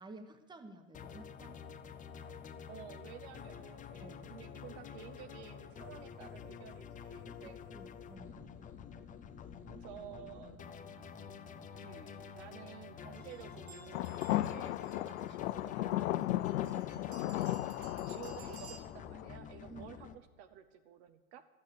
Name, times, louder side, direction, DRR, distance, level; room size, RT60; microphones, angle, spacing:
voice 1, 0.0-1.6 4.0-4.3 7.7-8.5 14.3-14.5 19.7-19.9, right 2 dB, 10° right, 8 dB, 1.2 m, -52 dB
sound 1, 0.9-20.1, left 7 dB, 20° left, 0.7 m, -49 dB
voice 2, 2.7-7.6 9.7-10.8 11.7-17.4 18.1-21.5, right 10 dB, 50° right, 8 dB, 0.9 m, -53 dB
sound 2, 13.1-18.8, right 6 dB, 70° right, 2.4 m, -57 dB
sound 3, 13.9-19.3, left 15 dB, 70° left, 0.5 m, -35 dB
12.0 x 8.7 x 8.2 m, 1.3 s
hypercardioid pair, 105°, 41 cm